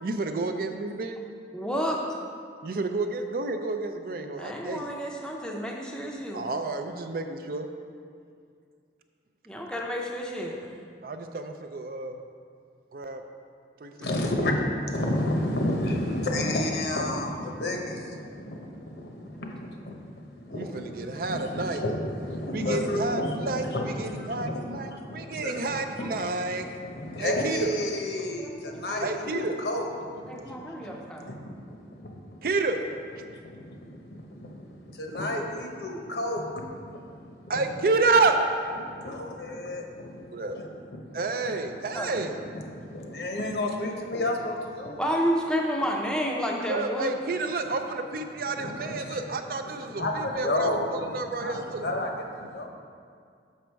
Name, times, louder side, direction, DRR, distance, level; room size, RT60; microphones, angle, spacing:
voice 1, 0.0-1.2 2.6-4.9 6.3-7.7 11.0-12.2 12.9-13.2 13.8-13.9 20.5-21.8 22.5-26.7 27.2-27.7 29.0-29.5 32.4-32.8 37.5-38.4 40.3-40.6 41.1-42.4 46.7-51.8, right 3 dB, 50° right, 6 dB, 0.4 m, -29 dB
voice 2, 1.5-2.0 4.4-6.5 9.5-10.7 26.0-26.1 28.4-28.9 30.3-31.3 41.9-42.2 45.0-47.1, equal, 5° left, -1 dB, 0.6 m, -30 dB
voice 3, 14.0-32.4 33.3-37.6 38.8-40.3 40.6-41.2 41.9-45.0 48.6-49.2 49.6-52.7, left 1 dB, 65° left, 2 dB, 0.9 m, -32 dB
6.5 x 6.1 x 4.5 m, 2.2 s
head